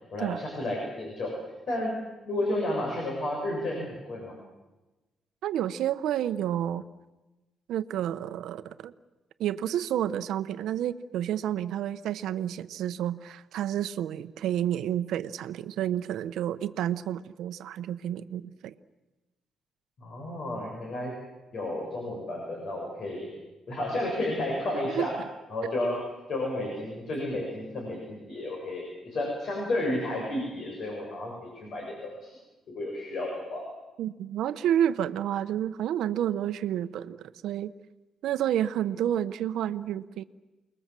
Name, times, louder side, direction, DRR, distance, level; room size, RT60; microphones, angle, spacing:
voice 1, 0.1-1.4 1.7-1.9 2.3-4.3 20.0-21.1 21.5-23.3 23.7-25.2 25.5-26.0 26.3-32.3 32.7-33.6, left 1 dB, 55° left, 0 dB, 7.2 m, -32 dB
voice 2, 5.4-6.8 7.7-8.9 9.4-18.7 24.9-25.1 25.6-25.7 34.0-37.7 38.2-40.2, right 11 dB, 85° right, 11 dB, 0.9 m, -30 dB
29.0 x 21.0 x 7.5 m, 1.1 s
cardioid pair, 110°, 0 cm